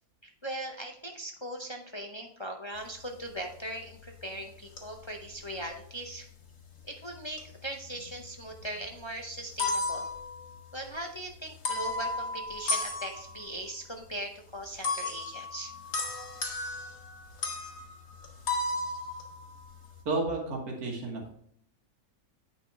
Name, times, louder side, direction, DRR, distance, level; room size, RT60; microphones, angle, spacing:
voice 1, 0.2-6.3 6.8-10.1 10.7-15.7, right 1 dB, 40° left, 2 dB, 0.4 m, -39 dB
sound 1, 3.8-4.2 4.8-6.2 7.1-8.3 8.6-8.7 9.3-10.9 11.6-13.6 14.8-20.0, left 3 dB, 65° left, 1.8 m, -34 dB
voice 2, 20.1-21.4, right 3 dB, 75° right, -1 dB, 2.0 m, -32 dB
9.0 x 5.5 x 3.3 m, 0.67 s
omnidirectional pair, 1.6 m